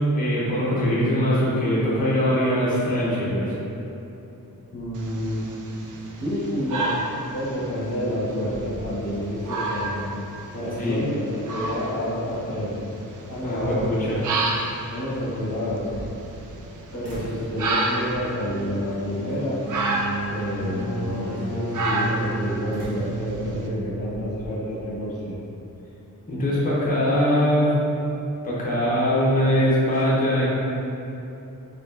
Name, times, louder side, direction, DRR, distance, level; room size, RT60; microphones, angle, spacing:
voice 1, 0.1-3.5 10.8-11.0 13.4-14.2 26.3-27.7 28.4-30.5, equal, 25° left, -8 dB, 0.9 m, -22 dB
voice 2, 4.7-5.5 6.2-7.0 7.3-10.0 10.5-12.8 13.3-13.9 14.9-15.9 16.9-19.6 20.3-25.4, equal, 45° left, -7 dB, 1.1 m, -29 dB
sound 1, 5.0-23.7, right 2 dB, 60° right, 0.5 m, -32 dB
sound 2, 8.5-9.5 9.9-10.0 12.7-12.8 13.3-14.2 15.6-16.7 17.0-17.5 18.1-18.5 19.3-19.7 22.7-24.5, equal, 45° right, 1.2 m, -41 dB
sound 3, 19.4-24.9, right 2 dB, 5° right, 0.9 m, -33 dB
4.2 x 2.9 x 2.7 m, 2.9 s
wide cardioid pair, 105°, 35 cm